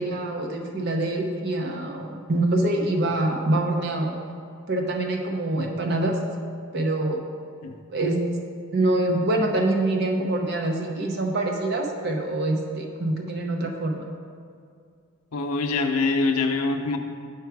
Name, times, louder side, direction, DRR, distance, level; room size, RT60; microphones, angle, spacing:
voice 1, 0.0-4.2 4.7-6.1 6.7-7.2 7.9-8.2 8.7-14.1, right 2 dB, 45° right, 2 dB, 0.7 m, -25 dB
voice 2, 15.3-17.0, left 3 dB, 90° left, 5 dB, 0.6 m, -24 dB
7.1 x 4.7 x 4.6 m, 2.3 s
head